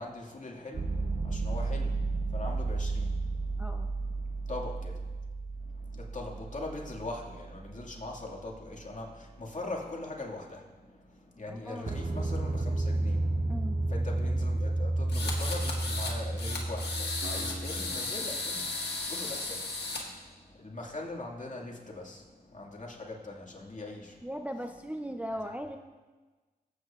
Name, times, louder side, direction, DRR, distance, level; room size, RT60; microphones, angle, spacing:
voice 1, 0.0-5.2 5.6-13.5 13.9-24.3, left 2 dB, 45° left, -2 dB, 2.1 m, -42 dB
sound 1, 0.7-8.6 11.9-17.9, right 2 dB, 40° right, 0.8 m, -32 dB
voice 2, 11.5-12.1 13.5-13.8 24.2-25.8, equal, 10° right, 5 dB, 0.5 m, -38 dB
sound 2, 15.1-16.1 16.4-20.0, left 3 dB, 85° left, 1.6 m, -35 dB
Acoustic guitar, 17.2-21.3, right 1 dB, 75° right, 1.8 m, -50 dB
18.5 x 8.5 x 2.5 m, 1.3 s
cardioid pair, 55°, 17 cm